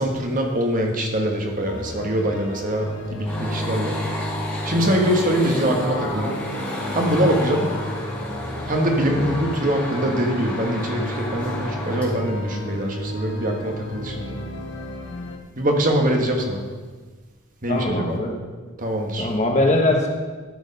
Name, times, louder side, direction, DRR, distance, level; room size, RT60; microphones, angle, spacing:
voice 1, 0.0-4.0 4.6-6.4 6.9-7.7 8.7-14.4 15.6-16.6 17.6-18.2 18.8-19.3, equal, 40° right, 1 dB, 1.3 m, -23 dB
sound 1, 1.7-15.4, equal, 60° left, 1.2 m, -33 dB
sound 2, 3.2-12.1, left 1 dB, 5° left, 2.4 m, -31 dB
voice 2, 17.7-18.4 19.2-20.1, left 2 dB, 35° left, 1 dB, 1.2 m, -21 dB
12.5 x 5.0 x 5.3 m, 1.4 s
head